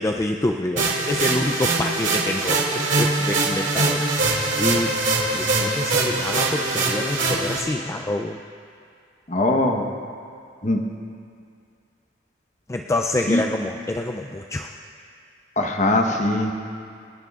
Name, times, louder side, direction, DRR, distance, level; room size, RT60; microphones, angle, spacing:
voice 1, 0.0-5.0 5.3-8.4 12.7-14.7, left 1 dB, 15° left, 3 dB, 0.3 m, -27 dB
sound 1, 0.8-7.6, right 3 dB, 80° right, 2.3 m, -22 dB
voice 2, 9.3-9.8 10.6-10.8 13.3-13.4 15.6-16.5, left 2 dB, 40° left, 3 dB, 1.0 m, -21 dB
28.5 x 10.5 x 2.4 m, 2.3 s
head